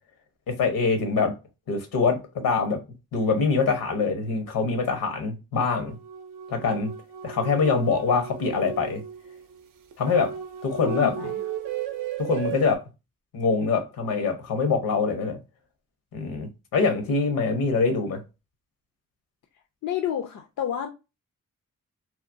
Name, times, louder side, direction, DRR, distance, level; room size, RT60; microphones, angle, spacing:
voice 1, 0.5-1.3 1.7-2.8 3.1-6.0 6.5-6.9 7.2-9.0 10.0-10.3 10.6-11.1 12.2-12.8 13.3-15.4 16.1-18.2, left 4 dB, 80° left, 0.9 m, -24 dB
sound 1, 5.8-12.8, right 8 dB, 70° right, 0.5 m, -35 dB
voice 2, 10.8-11.4 19.8-20.9, left 10 dB, 65° left, 0.5 m, -30 dB
2.9 x 2.1 x 2.5 m
cardioid pair, 55°, 33 cm